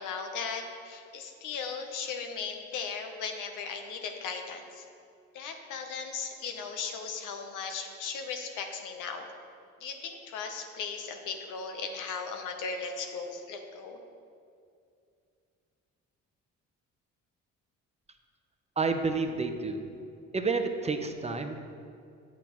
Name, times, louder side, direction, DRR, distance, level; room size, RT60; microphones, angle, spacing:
voice 1, 0.0-4.8 5.3-9.3 9.8-14.0, left 5 dB, 85° left, 5 dB, 0.9 m, -37 dB
voice 2, 18.8-19.9 20.3-21.6, right 4 dB, 20° right, 6 dB, 0.6 m, -30 dB
8.5 x 8.3 x 3.0 m, 2.4 s
cardioid pair, 90°, 30 cm